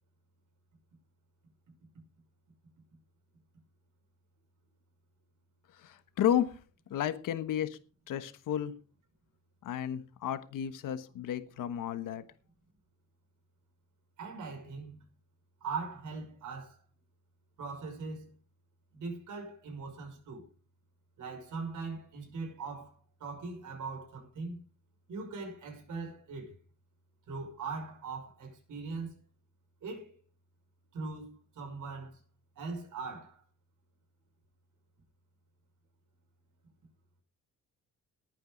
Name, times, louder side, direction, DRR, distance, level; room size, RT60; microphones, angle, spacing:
voice 1, 5.7-6.6 6.9-7.8 8.1-8.8 9.6-12.2, left 10 dB, 90° left, 1.3 m, -32 dB
voice 2, 14.2-15.1 15.6-16.8 17.6-18.3 18.9-20.4 21.2-24.6 25.1-26.6 27.3-29.2 29.8-30.1 30.9-32.2 32.6-33.4, right 4 dB, 70° right, 5.9 m, -41 dB
19.5 x 9.2 x 4.0 m
cardioid pair, 115°, 31 cm